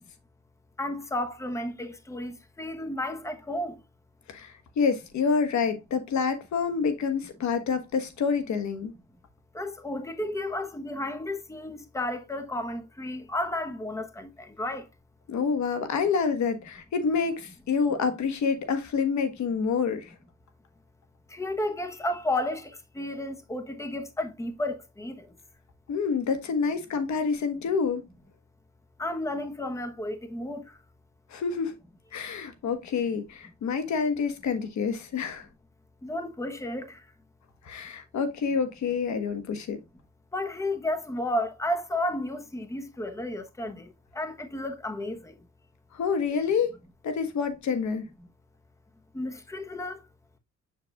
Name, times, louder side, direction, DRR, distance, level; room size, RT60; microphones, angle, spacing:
voice 1, 0.8-3.8 9.5-14.8 21.3-25.2 29.0-30.6 36.0-37.0 40.3-43.8 44.1-45.3 49.1-50.0, left 1 dB, 10° left, 1.0 m, -32 dB
voice 2, 4.3-8.9 15.3-20.1 25.9-28.0 31.3-31.8 32.1-35.4 37.6-39.8 45.9-46.7 47.0-48.1, left 5 dB, 70° left, 1.4 m, -27 dB
6.7 x 6.6 x 2.3 m
cardioid pair, 90°, 30 cm